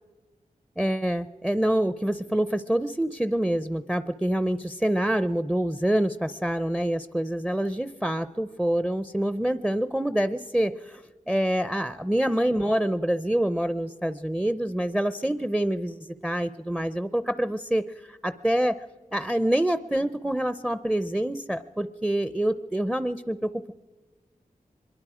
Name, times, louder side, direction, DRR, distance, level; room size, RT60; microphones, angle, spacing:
voice 1, 0.8-18.8 19.1-23.7, right 1 dB, 5° right, 13 dB, 0.5 m, -26 dB
24.0 x 22.0 x 4.9 m, 1.3 s
wide cardioid pair, 80°, 15 cm